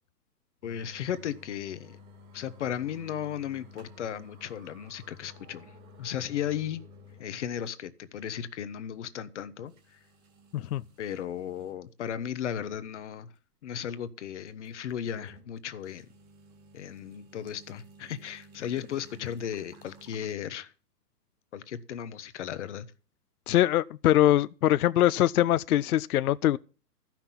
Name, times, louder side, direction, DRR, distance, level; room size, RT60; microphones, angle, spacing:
voice 1, 0.6-2.0 2.3-5.7 6.0-6.8 7.2-10.0 11.0-13.3 13.6-16.1 16.7-20.7 21.5-22.9, left 9 dB, 45° left, 0.9 m, -35 dB
sound 1, 0.6-7.3 7.7-7.8 8.5-8.6 9.7-11.8 12.3-12.4 14.5-15.5 15.8-20.3, left 2 dB, 20° right, 1.9 m, -53 dB
voice 2, 23.5-26.6, left 13 dB, 65° left, 0.5 m, -23 dB
13.5 x 6.0 x 7.2 m
hypercardioid pair, 155°, 49 cm